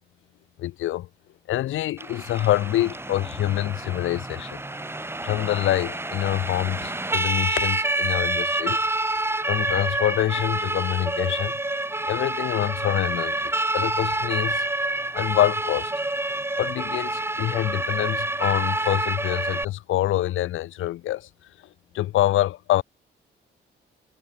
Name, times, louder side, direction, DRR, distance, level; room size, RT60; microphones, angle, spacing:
voice 1, 0.6-1.1 1.5-4.6 5.2-8.8 9.4-11.5 12.1-14.6 15.1-15.9 16.3-21.3 21.9-22.8, left 14 dB, 85° left, 4.9 m, -26 dB
Siren, 2.0-19.7, right 2 dB, 10° right, 5.0 m, -28 dB
cardioid pair, 90°, 20 cm